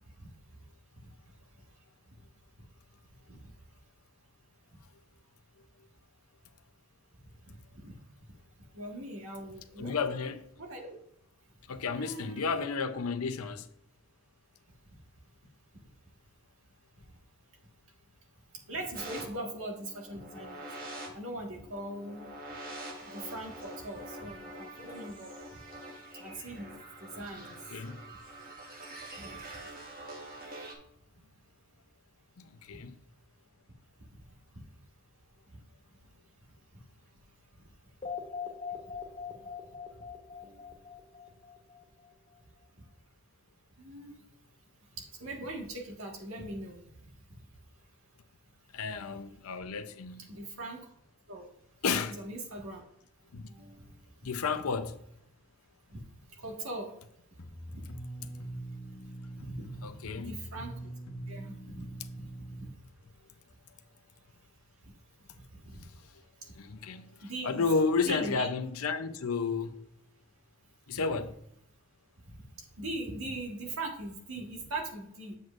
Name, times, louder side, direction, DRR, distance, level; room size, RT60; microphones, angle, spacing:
voice 1, 8.7-10.0 10.6-10.9 11.9-12.5 14.9-15.0 18.7-20.7 21.1-22.2 23.0-25.3 26.2-26.7 27.0-27.5 28.0-28.1 29.2-29.6 36.7-36.8 40.4-40.8 43.8-44.1 44.9-47.1 50.3-50.9 51.3-51.5 52.1-52.8 53.5-53.9 55.9-56.0 56.3-56.9 57.7-57.9 59.3-59.8 60.1-60.9 61.3-61.9 62.1-62.7 65.3-65.9 67.2-67.6 68.0-68.5 71.2-71.3 72.5-75.4, right 2 dB, 75° right, 1.7 m, -41 dB
voice 2, 9.8-10.4 11.7-13.7 27.7-28.0 32.4-32.9 48.7-50.3 51.8-52.2 53.3-53.5 54.2-54.9 59.8-60.4 66.6-67.2 67.4-69.8 70.9-71.3, left 4 dB, 90° left, 0.6 m, -32 dB
sound 1, 18.9-30.7, right 1 dB, 40° right, 1.3 m, -45 dB
sound 2, 38.0-42.0, left 6 dB, 25° left, 1.7 m, -41 dB
sound 3, 57.4-62.7, right 1 dB, 70° left, 1.1 m, -43 dB
7.8 x 7.6 x 2.5 m
head